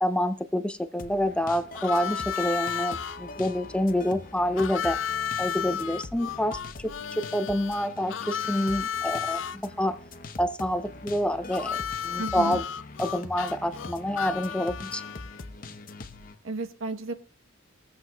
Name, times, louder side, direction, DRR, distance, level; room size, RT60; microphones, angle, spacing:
voice 1, 0.0-5.0 5.4-10.0 10.4-12.6 13.0-15.0, equal, 5° left, 10 dB, 0.5 m, -28 dB
sound 1, 1.0-16.3, left 3 dB, 45° left, 0.9 m, -43 dB
Harmonica, 1.7-3.2 4.6-9.6 11.5-15.4, left 8 dB, 65° left, 0.4 m, -33 dB
voice 2, 12.2-12.6 16.4-17.1, right 2 dB, 90° right, 8 dB, 0.9 m, -32 dB
22.5 x 7.8 x 2.3 m, 0.35 s
head